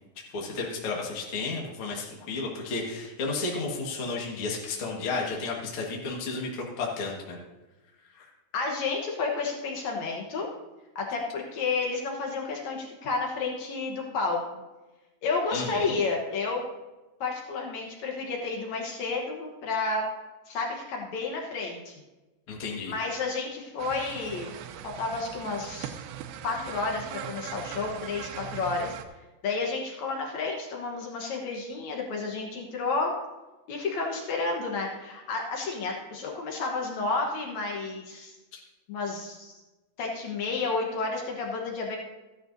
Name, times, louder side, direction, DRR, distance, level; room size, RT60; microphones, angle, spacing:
voice 1, 0.2-7.4 8.1-8.2 15.5-15.9 22.5-22.9 38.5-38.6, left 3 dB, 60° left, -2 dB, 1.3 m, -33 dB
voice 2, 8.5-10.5 10.9-14.4 15.2-16.6 17.2-20.0 20.5-21.9 22.9-24.5 24.8-26.0 26.4-28.9 29.4-33.1 33.7-38.3 38.9-39.6 40.0-42.0, left 4 dB, 75° left, 0 dB, 1.6 m, -31 dB
sound 1, 23.8-29.1, right 9 dB, 90° right, 2.9 m, -40 dB
15.0 x 11.0 x 2.6 m, 1.1 s
omnidirectional pair, 5.0 m